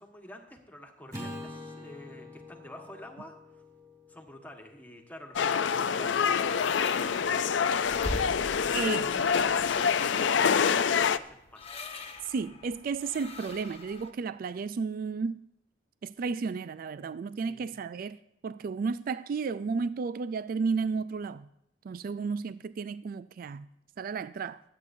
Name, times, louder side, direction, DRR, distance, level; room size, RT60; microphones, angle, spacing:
voice 1, 0.0-3.3 4.1-7.4 8.5-11.7 17.4-17.7, left 1 dB, 10° left, 1.4 m, -48 dB
Acoustic guitar / Strum, 1.1-5.5, left 1 dB, 20° right, 3.7 m, -45 dB
sound 1, 5.4-11.2, left 6 dB, 75° left, 0.5 m, -26 dB
sound 2, 6.1-14.1, left 2 dB, 30° left, 1.2 m, -43 dB
voice 2, 8.7-9.3 12.2-15.4 16.0-18.2 18.4-21.5 21.8-23.7 24.0-24.6, right 5 dB, 50° right, 0.3 m, -33 dB
24.0 x 8.4 x 2.7 m
head